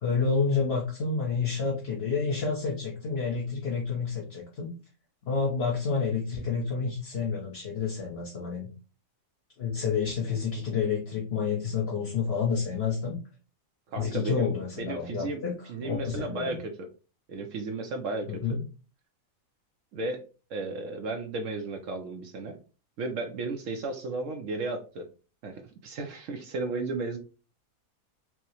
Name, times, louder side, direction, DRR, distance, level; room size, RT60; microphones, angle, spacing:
voice 1, 0.0-4.7 5.2-8.7 9.6-13.2 14.0-16.6 18.3-18.6, left 5 dB, 50° left, -2 dB, 0.9 m, -29 dB
voice 2, 13.9-15.4 15.7-16.9 17.3-18.6 19.9-20.2 20.5-22.6 23.0-25.0 25.4-27.2, right 3 dB, 65° right, 4 dB, 0.8 m, -34 dB
4.6 x 2.1 x 2.9 m, 0.34 s
omnidirectional pair, 1.7 m